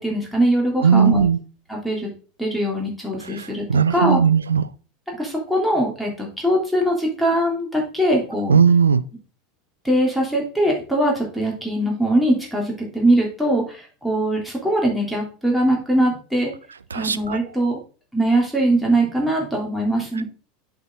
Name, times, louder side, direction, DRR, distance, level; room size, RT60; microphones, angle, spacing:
voice 1, 0.0-1.2 1.7-2.1 2.4-3.6 3.9-4.2 5.2-8.6 9.8-16.5 16.9-17.8 18.1-20.2, right 1 dB, ahead, 3.1 m, -21 dB
voice 2, 0.8-1.4 3.2-4.7 8.5-9.0 16.9-17.4, right 6 dB, 75° right, 0.4 m, -18 dB
8.1 x 5.7 x 3.7 m
figure-of-eight pair, 80°, 0 cm